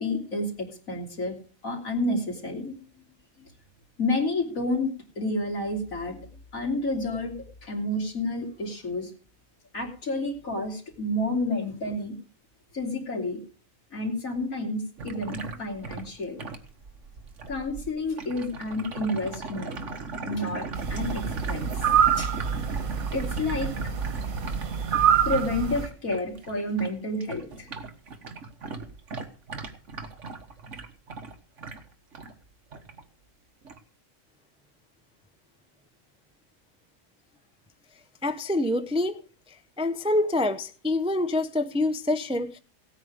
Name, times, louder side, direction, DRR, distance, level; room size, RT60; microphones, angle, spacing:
voice 1, 0.0-1.4 1.6-3.1 4.0-4.9 5.2-7.3 7.6-9.1 9.7-12.2 12.7-13.4 13.9-16.5 17.5-19.8 20.3-21.7 22.2-22.3 23.1-23.7 25.3-27.7, left 2 dB, 80° left, 3.5 m, -30 dB
sound 1, 15.0-26.9 27.2-32.3 32.7-33.0 33.7-33.8, right 4 dB, 60° right, 1.7 m, -38 dB
sound 2, 20.7-25.9, right 8 dB, 90° right, 1.8 m, -26 dB
voice 2, 38.2-39.2 39.8-42.6, left 2 dB, 5° right, 0.4 m, -26 dB
17.0 x 9.1 x 5.0 m
omnidirectional pair, 1.4 m